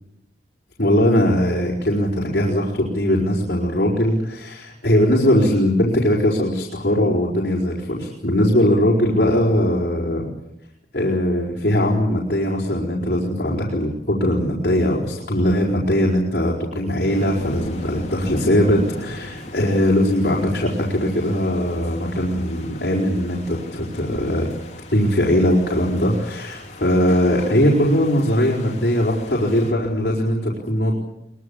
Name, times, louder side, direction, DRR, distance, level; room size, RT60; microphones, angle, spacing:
voice 1, 0.8-10.3 10.9-24.5 24.9-30.9, equal, 60° left, -3 dB, 4.8 m, -20 dB
sound 1, 17.1-29.7, left 1 dB, 40° left, 4.1 m, -36 dB
23.5 x 21.5 x 8.7 m, 0.87 s
head